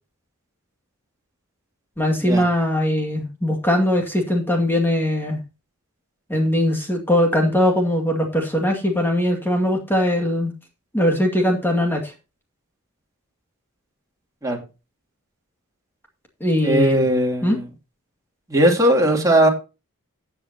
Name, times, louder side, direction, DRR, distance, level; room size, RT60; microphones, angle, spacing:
voice 1, 2.0-5.4 6.3-10.5 10.9-12.1 16.4-17.1 17.4-17.6, left 1 dB, 10° left, 2 dB, 2.2 m, -20 dB
voice 2, 16.6-17.6 18.5-19.5, right 1 dB, 15° right, 0 dB, 2.8 m, -18 dB
15.0 x 7.9 x 2.8 m, 0.30 s
head